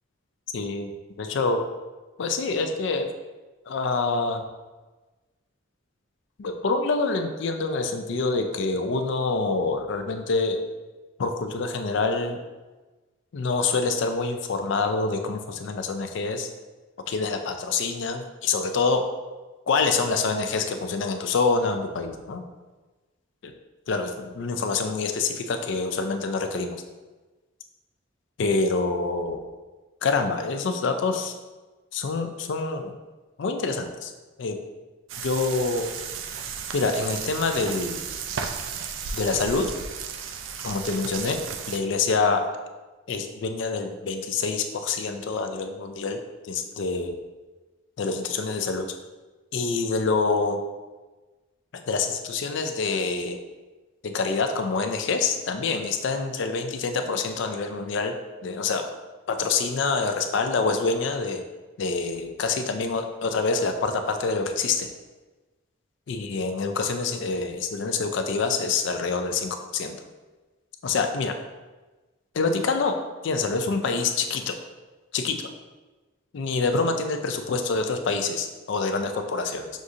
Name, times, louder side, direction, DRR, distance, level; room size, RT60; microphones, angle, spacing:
voice 1, 0.5-0.9 1.2-1.6 2.2-3.1 3.7-4.4 6.4-10.6 11.2-12.4 13.3-16.5 17.1-19.1 19.7-22.4 23.9-26.8 28.4-29.4 30.0-31.3 31.9-33.0 33.4-34.1 34.4-34.6 35.2-35.9 36.7-38.0 39.1-39.7 40.6-41.4 41.7-42.4 43.1-46.2 46.4-47.1 48.0-48.9 49.5-50.6 51.9-53.4 54.0-58.1 58.4-58.9 59.3-61.4 61.8-64.9 66.1-70.0 70.8-71.3 72.3-73.0 73.2-74.6 75.1-75.5 76.3-79.7, left 4 dB, 60° left, 6 dB, 0.4 m, -26 dB
sound 1, 35.1-41.8, right 6 dB, 65° right, 0.3 m, -34 dB
6.1 x 2.5 x 2.7 m, 1.2 s
head